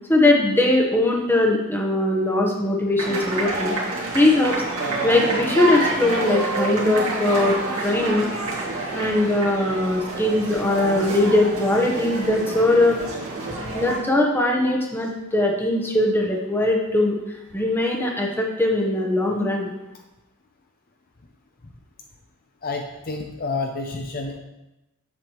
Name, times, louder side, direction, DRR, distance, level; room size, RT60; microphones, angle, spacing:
voice 1, 0.1-3.7 4.1-8.3 8.9-13.0 13.7-17.1 17.5-19.7, left 1 dB, 10° left, 0 dB, 0.9 m, -20 dB
sound 1, 3.0-14.0, right 2 dB, 65° right, 1.9 m, -28 dB
voice 2, 13.4-13.7 22.6-24.4, left 3 dB, 40° left, 2 dB, 0.6 m, -30 dB
7.4 x 7.1 x 3.0 m, 0.96 s
head